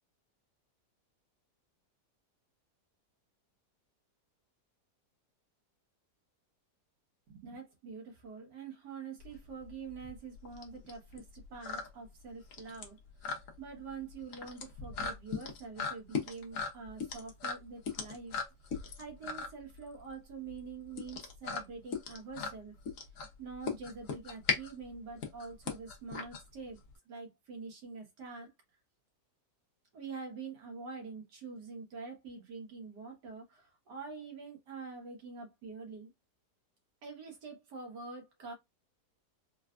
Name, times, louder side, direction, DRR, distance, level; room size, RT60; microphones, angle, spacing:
voice 1, 7.3-18.4 18.7-22.8 23.4-26.8 27.1-28.5 29.9-36.1 37.0-38.5, right 4 dB, 80° right, 1.8 m, -46 dB
sound 1, 9.2-27.0, left 5 dB, 60° left, 1.1 m, -39 dB
4.0 x 2.2 x 2.4 m
omnidirectional pair, 1.8 m